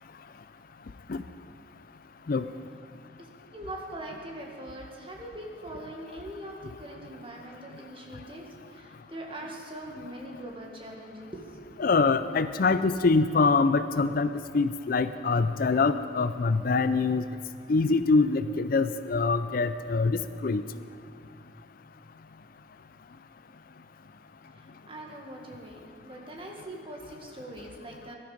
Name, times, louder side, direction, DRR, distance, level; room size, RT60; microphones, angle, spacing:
voice 1, 3.2-11.8 24.6-28.2, right 1 dB, 30° right, 0 dB, 1.8 m, -42 dB
voice 2, 11.8-17.2 17.7-20.6, left 4 dB, 50° left, 12 dB, 0.4 m, -24 dB
18.5 x 12.0 x 5.1 m, 2.3 s
head